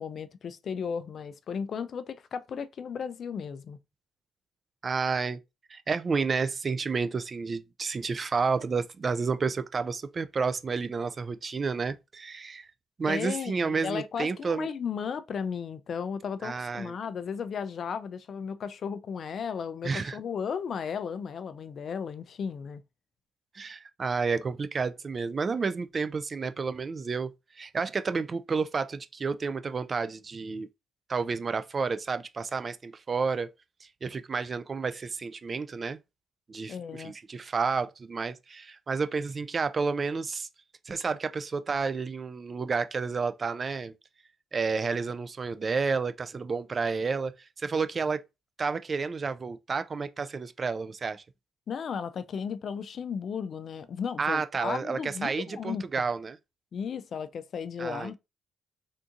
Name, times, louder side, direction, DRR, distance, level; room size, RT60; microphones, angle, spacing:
voice 1, 0.0-3.8 13.1-22.8 36.7-37.1 51.7-55.8 56.7-58.2, left 6 dB, 55° left, 0.3 m, -35 dB
voice 2, 4.8-5.4 5.7-12.7 13.0-14.7 16.4-17.0 19.8-20.2 23.5-30.7 31.1-33.5 33.8-36.0 36.5-40.5 40.9-43.9 44.5-48.2 48.6-51.2 54.2-56.4 57.8-58.1, right 4 dB, 35° right, 0.3 m, -30 dB
3.6 x 2.6 x 2.5 m
cardioid pair, 90°, 0 cm